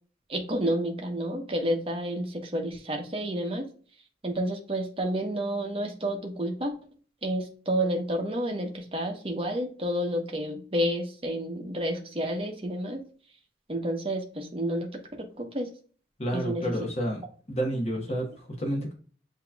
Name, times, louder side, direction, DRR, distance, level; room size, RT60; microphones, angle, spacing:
voice 1, 0.3-3.6 4.2-6.7 7.2-13.0 13.7-14.9 15.2-15.7 16.3-16.6, right 1 dB, 30° right, 2 dB, 1.0 m, -30 dB
voice 2, 16.2-17.2 17.5-18.9, equal, 35° left, 1 dB, 1.2 m, -30 dB
7.8 x 2.9 x 2.3 m, 0.41 s
head